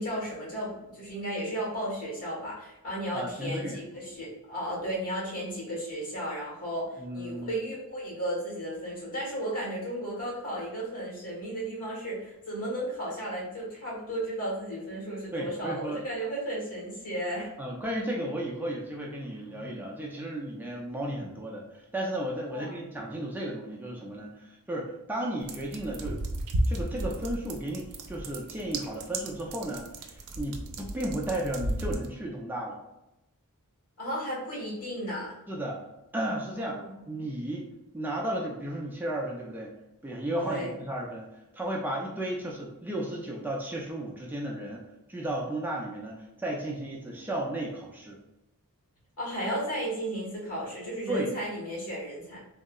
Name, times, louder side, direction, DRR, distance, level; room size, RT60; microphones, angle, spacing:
voice 1, 0.0-17.5 22.5-22.7 34.0-35.3 36.6-36.9 40.4-40.8 49.2-52.4, right 1 dB, 80° left, -5 dB, 1.4 m, -34 dB
voice 2, 3.1-3.8 7.0-7.6 15.3-16.0 17.6-26.2 26.7-32.8 35.5-35.8 36.1-36.8 37.1-37.7 37.9-44.8 45.1-48.2 51.1-51.3, right 1 dB, 10° right, -2 dB, 0.4 m, -34 dB
sound 1, 25.4-32.1, right 1 dB, 90° right, 0.4 m, -34 dB
3.5 x 2.0 x 2.3 m, 0.92 s
head